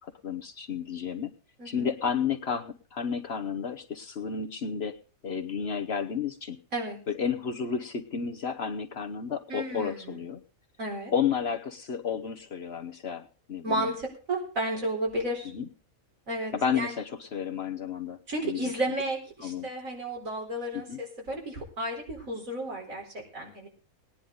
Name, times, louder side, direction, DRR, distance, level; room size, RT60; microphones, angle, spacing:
voice 1, 0.0-1.3 1.6-4.9 5.2-6.6 7.1-10.4 11.1-13.9 15.5-15.7 16.5-18.2 18.4-18.7 19.4-19.7 20.7-21.0, left 7 dB, 50° left, 5 dB, 1.1 m, -32 dB
voice 2, 9.5-10.2 10.8-11.1 13.6-15.5 16.3-17.0 18.3-23.7, right 1 dB, 70° right, -1 dB, 4.6 m, -33 dB
19.0 x 10.0 x 4.0 m, 0.37 s
omnidirectional pair, 1.5 m